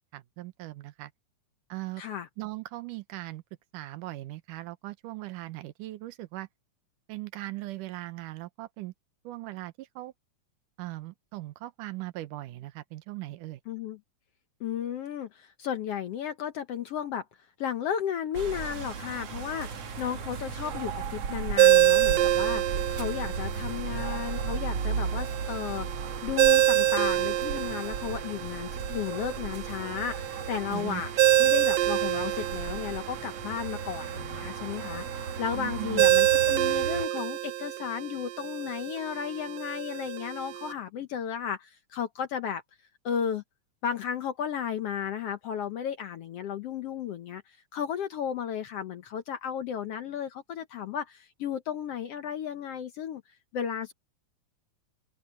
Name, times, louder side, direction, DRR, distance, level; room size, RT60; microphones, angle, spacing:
voice 1, 0.1-1.1 1.7-2.0 2.4-3.4 3.7-6.5 7.1-8.9 9.2-10.1 10.8-13.6 30.7-31.0 35.6-36.0, right 18 dB, 90° right, 2.4 m, -39 dB
voice 2, 2.0-2.3 13.7-14.0 14.6-17.2 17.6-19.7 20.0-25.9 26.2-31.1 31.4-42.6 43.0-43.4 43.8-53.2 53.5-53.9, left 8 dB, 70° left, 1.6 m, -34 dB
sound 1, 18.3-37.1, right 5 dB, 50° right, 2.8 m, -36 dB
Ringtone, 21.6-40.7, right 13 dB, 70° right, 1.9 m, -27 dB
open air
omnidirectional pair, 3.7 m